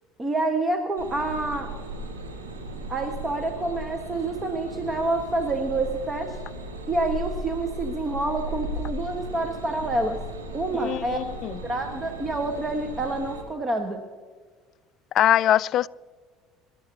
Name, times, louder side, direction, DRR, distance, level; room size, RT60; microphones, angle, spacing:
voice 1, 0.2-1.7 2.9-6.4 6.9-10.2 10.5-11.2 11.6-14.0, right 2 dB, 25° right, 1.4 m, -27 dB
sound 1, 1.0-13.4, right 1 dB, 90° right, 1.8 m, -36 dB
voice 2, 10.8-11.6 15.1-15.9, left 12 dB, 55° left, 0.3 m, -22 dB
25.5 x 12.5 x 2.8 m
hypercardioid pair, 65°, 0 cm